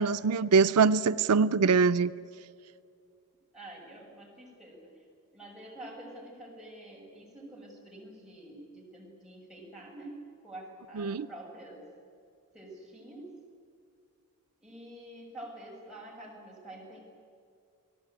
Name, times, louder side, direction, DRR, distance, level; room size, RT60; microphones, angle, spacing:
voice 1, 0.0-2.1 11.0-11.3, right 5 dB, 90° right, 0.5 m, -23 dB
voice 2, 3.5-5.0 5.3-11.9 12.5-13.3 14.6-17.0, right 1 dB, 5° right, 6.5 m, -47 dB
29.5 x 18.0 x 8.9 m
head